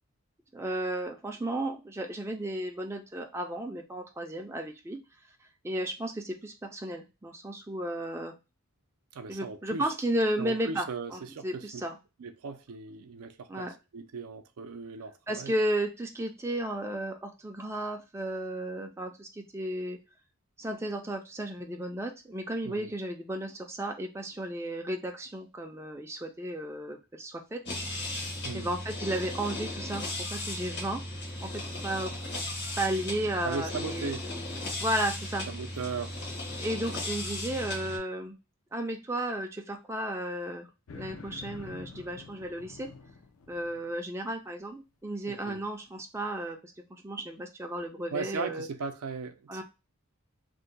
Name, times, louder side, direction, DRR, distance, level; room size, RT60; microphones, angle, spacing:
voice 1, 0.5-5.0 5.6-8.3 9.3-12.0 13.5-13.7 15.3-20.0 20.6-27.6 28.5-30.0 30.3-31.0 31.4-32.1 32.8-34.1 34.8-35.5 36.5-38.4 38.7-40.7 40.9-42.9 43.5-48.7 49.5-49.6, right 1 dB, 10° right, 0.4 m, -34 dB
voice 2, 9.1-9.9 10.4-11.8 12.2-13.7 13.9-15.5 22.6-22.9 28.4-28.7 33.4-34.2 35.5-36.2 45.3-45.6 48.1-49.6, right 4 dB, 80° right, 0.4 m, -37 dB
sound 1, 27.7-38.0, left 1 dB, 50° left, 0.9 m, -36 dB
sound 2, 40.9-43.9, left 4 dB, 70° left, 0.5 m, -47 dB
2.6 x 2.2 x 3.9 m
head